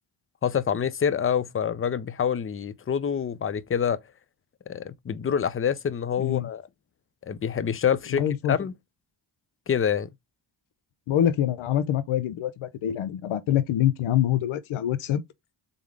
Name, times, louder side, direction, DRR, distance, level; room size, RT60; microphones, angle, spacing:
voice 1, 0.4-4.0 4.7-6.6 7.3-8.2 8.5-8.7 9.7-10.1, left 8 dB, 30° left, 0.5 m, -26 dB
voice 2, 6.2-6.5 8.1-8.6 11.1-15.2, left 11 dB, 85° left, 0.5 m, -25 dB
3.7 x 3.5 x 3.4 m
cardioid pair, 55°, 47 cm